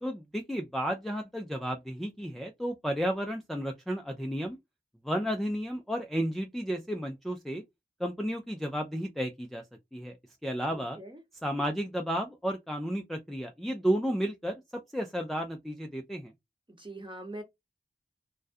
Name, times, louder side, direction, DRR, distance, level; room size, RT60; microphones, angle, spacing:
voice 1, 0.0-4.6 5.0-7.6 8.0-9.6 9.9-10.1 10.4-11.0 11.4-14.6 14.9-16.3, equal, ahead, 0.4 m, -32 dB
voice 2, 10.7-11.2 16.8-17.4, right 1 dB, 25° right, 0.9 m, -42 dB
2.3 x 2.2 x 2.5 m
wide cardioid pair, 45°, 19 cm